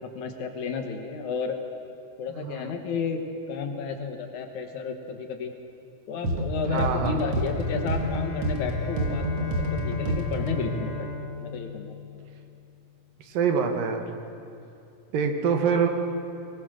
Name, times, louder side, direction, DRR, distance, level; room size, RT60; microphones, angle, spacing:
voice 1, 0.0-1.6 2.2-3.2 3.5-5.5 6.1-10.9 11.4-12.0, left 5 dB, 65° left, 5 dB, 2.5 m, -32 dB
sound 1, 6.2-10.8, equal, 50° right, 2.6 m, -28 dB
voice 2, 6.7-7.2 13.3-14.0 15.1-15.9, right 6 dB, 85° right, 5 dB, 3.1 m, -25 dB
Bowed string instrument, 7.3-12.8, left 2 dB, 30° left, 3.2 m, -38 dB
21.5 x 19.5 x 6.4 m, 2.6 s
omnidirectional pair, 3.9 m